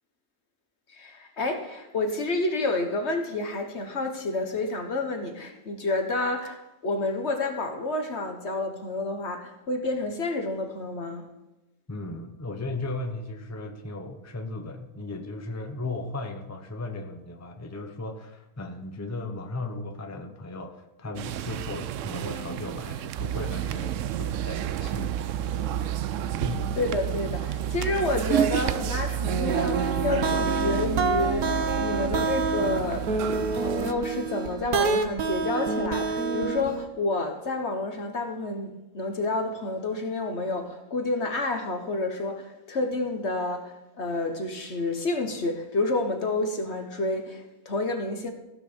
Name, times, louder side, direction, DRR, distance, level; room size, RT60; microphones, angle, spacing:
voice 1, 0.9-11.3 26.8-33.1 33.5-48.3, left 2 dB, 50° left, 1.5 m, -29 dB
voice 2, 11.9-25.2 26.3-26.8, left 2 dB, 15° left, 0.9 m, -36 dB
sound 1, 21.2-33.9, right 10 dB, 70° right, 0.8 m, -30 dB
sound 2, 29.3-36.9, right 4 dB, 85° right, 1.5 m, -27 dB
16.0 x 6.0 x 7.0 m
omnidirectional pair, 1.5 m